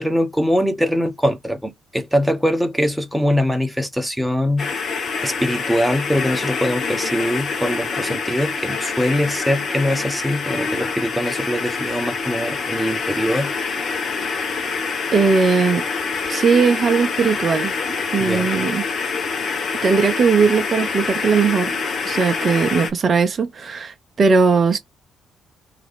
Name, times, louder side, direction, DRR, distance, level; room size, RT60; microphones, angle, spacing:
voice 1, 0.0-4.7 5.2-13.5 18.2-18.5, equal, 5° right, 1.3 m, -22 dB
sound 1, 4.6-22.9, left 5 dB, 55° left, 1.1 m, -26 dB
voice 2, 15.1-15.8 16.3-17.7 18.1-18.8 19.8-21.8 22.1-24.8, right 5 dB, 45° right, 0.7 m, -18 dB
3.5 x 2.9 x 3.4 m
hypercardioid pair, 45°, 0 cm